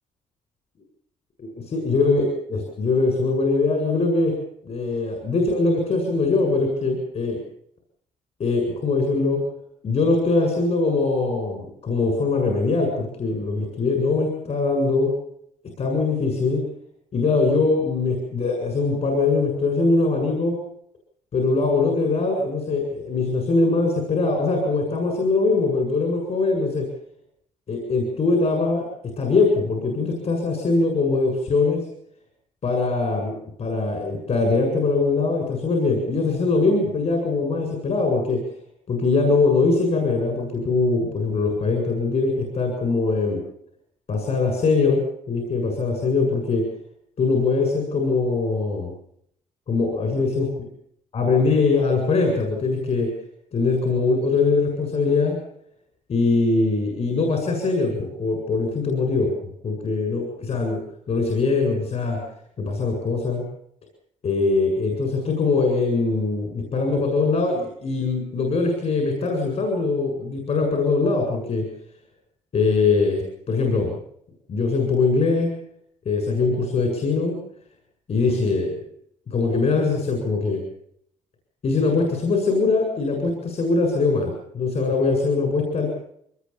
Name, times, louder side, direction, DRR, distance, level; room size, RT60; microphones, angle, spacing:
voice 1, 1.4-4.3 4.6-7.4 8.4-9.4 9.8-15.1 15.8-16.6 17.1-20.6 21.3-26.9 27.7-28.9 29.2-31.8 32.6-38.4 38.9-43.4 44.1-45.0 45.3-46.6 47.2-48.9 49.7-50.5 51.1-53.1 53.5-55.4 56.1-59.3 59.6-60.8 61.1-62.2 62.6-63.4 64.2-71.6 72.5-73.9 74.5-75.5 76.1-77.4 78.1-78.9 79.3-80.6 81.6-85.9, left 3 dB, 55° left, 2 dB, 7.4 m, -22 dB
24.0 x 20.5 x 7.2 m, 0.69 s
cardioid pair, 110°, 13 cm